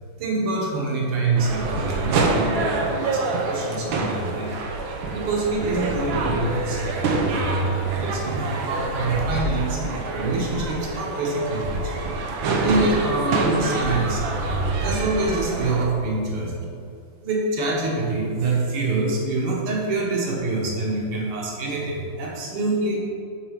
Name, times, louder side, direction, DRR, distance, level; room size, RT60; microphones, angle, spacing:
voice 1, 0.2-4.5 5.1-11.9 12.4-16.5 17.2-23.0, right 2 dB, 90° right, -2 dB, 2.4 m, -25 dB
sound 1, 1.4-15.8, right 3 dB, 70° right, 1.6 m, -26 dB
8.0 x 6.1 x 5.2 m, 2.6 s
omnidirectional pair, 2.4 m